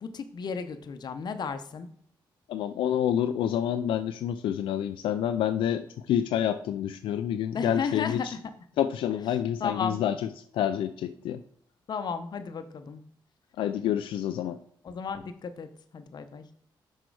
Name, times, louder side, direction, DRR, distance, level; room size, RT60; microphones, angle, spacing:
voice 1, 0.0-1.9 7.5-8.4 9.6-10.0 11.9-13.0 14.8-16.4, left 6 dB, 55° left, 9 dB, 0.8 m, -34 dB
voice 2, 2.5-8.3 8.8-10.1 10.5-11.4 13.6-14.6, left 10 dB, 90° left, 9 dB, 0.3 m, -28 dB
6.1 x 4.4 x 4.7 m, 0.62 s
cardioid pair, 90°, 9 cm